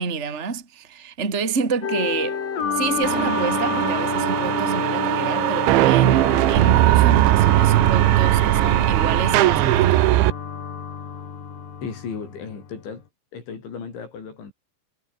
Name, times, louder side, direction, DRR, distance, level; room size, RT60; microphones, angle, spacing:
voice 1, 0.0-2.4 2.7-10.0, right 5 dB, 15° right, 2.7 m, -28 dB
sound 1, 1.8-12.8, left 6 dB, 45° left, 4.9 m, -29 dB
sound 2, 3.0-10.3, right 17 dB, 75° right, 3.2 m, -18 dB
voice 2, 11.8-13.0 13.3-14.5, left 6 dB, 65° left, 7.9 m, -35 dB
omnidirectional pair, 5.8 m